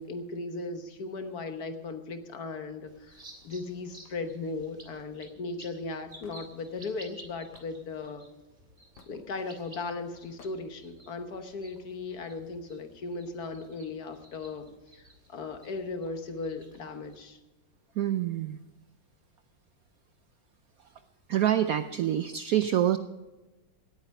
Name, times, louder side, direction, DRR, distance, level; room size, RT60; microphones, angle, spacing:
voice 1, 0.0-8.3 9.1-17.4, left 3 dB, 55° left, 8 dB, 1.5 m, -37 dB
sound 1, 2.9-17.2, right 1 dB, 25° right, 2.4 m, -54 dB
Hammer / Wood, 6.2-6.4 7.5-7.7 9.0-9.2 10.4-10.6, left 5 dB, 90° left, 2.0 m, -53 dB
voice 2, 18.0-18.6 21.3-23.0, right 11 dB, 75° right, 11 dB, 0.8 m, -26 dB
18.0 x 9.1 x 5.3 m, 1.1 s
omnidirectional pair, 2.0 m